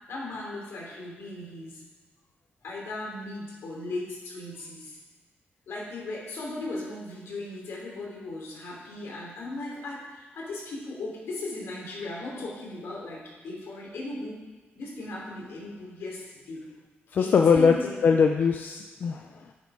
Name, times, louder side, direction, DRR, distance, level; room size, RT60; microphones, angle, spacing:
voice 1, 0.1-1.8 2.6-5.0 5.7-14.4 14.7-16.6 17.2-18.0, left 2 dB, 85° left, -3 dB, 3.1 m, -37 dB
voice 2, 17.1-17.7 18.0-19.5, left 6 dB, 50° left, 4 dB, 0.4 m, -21 dB
9.6 x 6.2 x 4.9 m, 1.3 s
wide cardioid pair, 170°, 4 cm